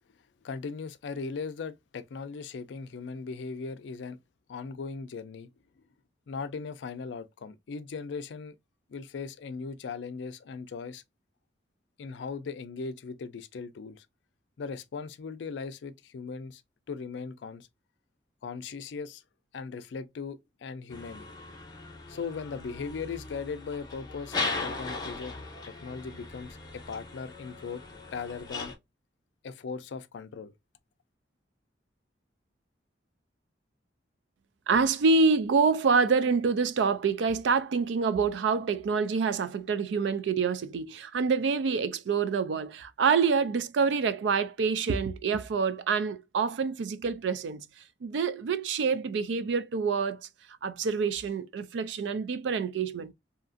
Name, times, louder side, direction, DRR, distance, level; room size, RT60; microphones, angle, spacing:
voice 1, 0.4-4.2 4.5-5.5 6.3-8.6 8.9-11.0 12.0-14.1 14.6-16.6 16.9-17.7 18.4-19.2 19.5-21.3 22.1-25.3 25.6-27.8 28.1-28.7 29.4-30.5, left 5 dB, 75° left, 0.4 m, -38 dB
sound 1, 20.9-28.7, left 3 dB, 25° left, 0.6 m, -38 dB
voice 2, 34.7-47.7 48.0-50.3 50.6-53.1, right 5 dB, 80° right, 0.4 m, -26 dB
2.8 x 2.4 x 2.5 m
head